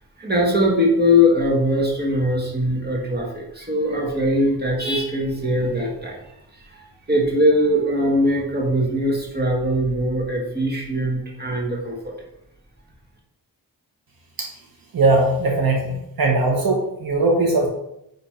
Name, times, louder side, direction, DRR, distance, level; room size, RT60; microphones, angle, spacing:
voice 1, 0.2-6.2 6.7-12.1, left 1 dB, 25° right, -1 dB, 1.5 m, -21 dB
voice 2, 14.9-17.7, right 2 dB, 60° right, 0 dB, 1.1 m, -19 dB
9.3 x 3.3 x 4.3 m, 0.81 s
wide cardioid pair, 155°, 40 cm